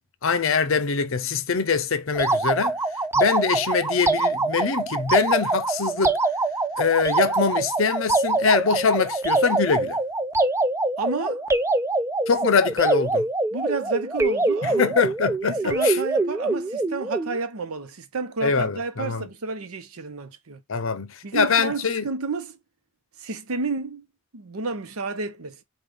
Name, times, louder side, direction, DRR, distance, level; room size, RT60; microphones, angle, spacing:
voice 1, 0.2-2.8 3.2-6.2 6.8-10.0 12.3-13.3 14.6-16.0 18.4-19.3 20.7-22.1, left 5 dB, 65° left, 0.6 m, -23 dB
sound 1, 2.1-17.4, right 2 dB, 10° right, 0.3 m, -24 dB
voice 2, 11.0-11.4 13.5-14.9 15.4-20.6 21.2-22.6 23.2-24.0 24.3-25.6, right 4 dB, 80° right, 0.8 m, -31 dB
5.3 x 2.4 x 3.3 m
head